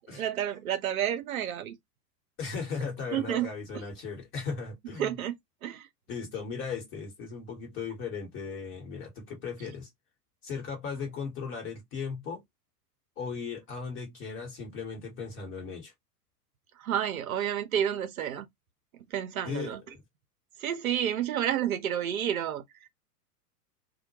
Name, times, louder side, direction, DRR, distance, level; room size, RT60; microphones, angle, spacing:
voice 1, 0.0-1.8 3.1-3.5 3.7-3.8 5.0-5.3 5.6-5.9 16.8-18.5 19.1-19.8 20.6-22.6, right 10 dB, 60° right, 0.7 m, -30 dB
voice 2, 2.4-5.2 6.1-9.9 10.4-12.4 13.2-15.9 19.4-20.0, left 5 dB, 25° left, 1.2 m, -37 dB
2.2 x 2.1 x 2.8 m
figure-of-eight pair, 105°, 48 cm